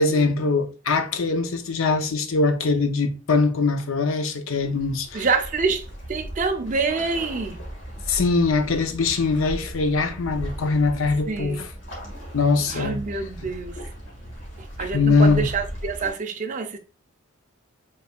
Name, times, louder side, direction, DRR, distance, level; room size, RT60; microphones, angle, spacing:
voice 1, 0.0-5.3 8.1-11.7 12.3-13.0 14.8-15.4, left 3 dB, 85° left, 0.7 m, -22 dB
sound 1, 4.6-16.1, equal, 70° left, 1.8 m, -37 dB
voice 2, 5.1-7.6 11.3-11.6 12.7-13.8 14.6-16.8, right 4 dB, 40° right, 0.5 m, -27 dB
5.4 x 3.4 x 2.3 m
head